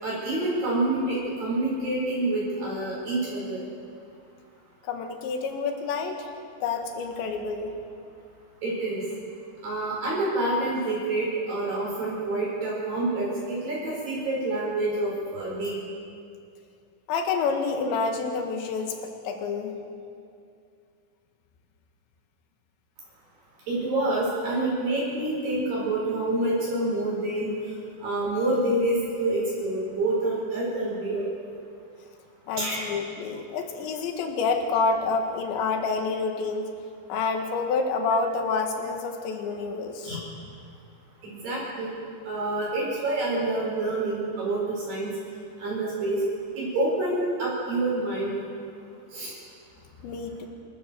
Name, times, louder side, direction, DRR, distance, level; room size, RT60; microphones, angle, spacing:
voice 1, 0.0-3.6 8.6-9.0 9.6-15.8 23.7-27.5 28.0-31.2 32.6-32.8 40.0-40.2 41.2-41.9 42.3-45.1 45.6-46.2 46.5-48.3 49.1-49.3, right 2 dB, 50° right, -5 dB, 6.4 m, -27 dB
voice 2, 4.9-6.3 6.6-7.7 17.1-19.7 32.5-36.7 37.1-40.2 50.0-50.5, left 4 dB, 75° left, 4 dB, 4.0 m, -28 dB
27.5 x 14.0 x 7.0 m, 2.4 s
omnidirectional pair, 5.3 m